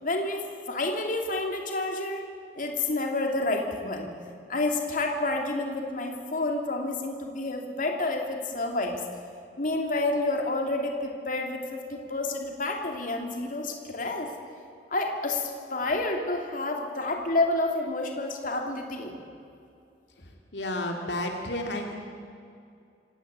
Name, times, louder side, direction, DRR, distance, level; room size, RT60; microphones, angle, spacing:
voice 1, 0.0-2.3 2.5-4.1 4.5-9.0 9.6-14.3 14.9-19.1, left 2 dB, 50° left, 2 dB, 2.9 m, -29 dB
voice 2, 20.5-21.9, left 1 dB, 75° left, 2 dB, 2.5 m, -31 dB
26.0 x 18.0 x 8.3 m, 2.5 s
head